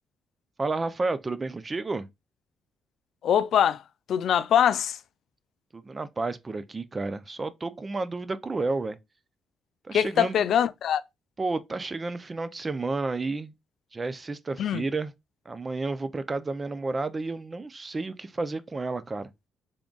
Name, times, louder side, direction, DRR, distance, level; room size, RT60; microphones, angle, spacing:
voice 1, 0.6-2.1 5.7-9.0 9.8-10.4 11.4-13.5 13.9-15.1 15.5-19.3, right 3 dB, 25° right, 0.4 m, -31 dB
voice 2, 3.2-3.8 4.1-5.0 9.9-11.0 14.6-14.8, left 9 dB, 70° left, 0.3 m, -23 dB
3.5 x 2.3 x 3.7 m
cardioid pair, 90°, 0 cm